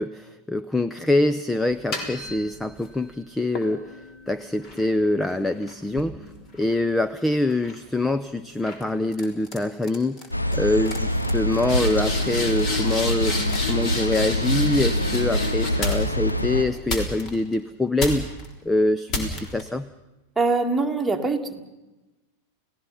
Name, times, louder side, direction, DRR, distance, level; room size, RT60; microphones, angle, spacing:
voice 1, 0.0-10.2 10.5-13.4 13.7-18.3 18.6-19.9, left 2 dB, 5° left, 13 dB, 0.6 m, -25 dB
sound 1, 1.7-2.9 3.6-7.1 7.5-7.9 8.6-8.8 9.1-9.6 9.8-10.3 10.5-10.6 10.9-16.3 16.9-17.5 18.0-18.5 19.1-19.6, left 2 dB, 35° left, 3.7 m, -31 dB
sound 2, 10.3-16.6, equal, 85° left, 1.5 m, -25 dB
voice 2, 20.4-21.6, right 3 dB, 10° right, 3 dB, 1.9 m, -23 dB
29.5 x 17.0 x 5.6 m, 1.0 s
figure-of-eight pair, 90°, 0 cm